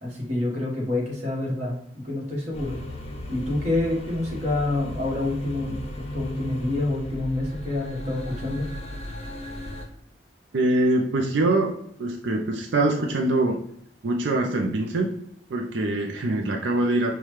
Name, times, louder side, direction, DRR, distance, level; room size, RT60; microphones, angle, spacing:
voice 1, 0.0-2.8 3.3-8.7, left 2 dB, 40° right, -3 dB, 1.3 m, -27 dB
sound 1, 2.5-9.9, left 1 dB, 35° left, 0.6 m, -36 dB
voice 2, 10.5-11.7 12.0-13.6 14.0-15.1 15.5-17.1, right 2 dB, 90° right, 1 dB, 0.5 m, -23 dB
5.5 x 2.3 x 3.1 m, 0.71 s
head